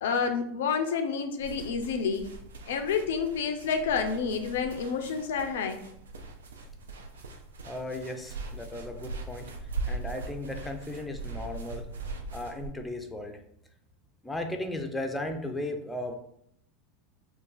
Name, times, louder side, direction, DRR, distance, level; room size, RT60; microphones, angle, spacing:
voice 1, 0.0-2.3 2.7-5.8, left 6 dB, 70° left, 7 dB, 0.3 m, -29 dB
sound 1, 1.4-12.7, right 3 dB, 80° right, 0.4 m, -40 dB
voice 2, 7.6-9.5 9.9-11.9 12.3-13.4 14.2-16.2, left 1 dB, 10° left, 4 dB, 0.5 m, -36 dB
2.5 x 2.3 x 3.8 m, 0.73 s
hypercardioid pair, 85°, 0 cm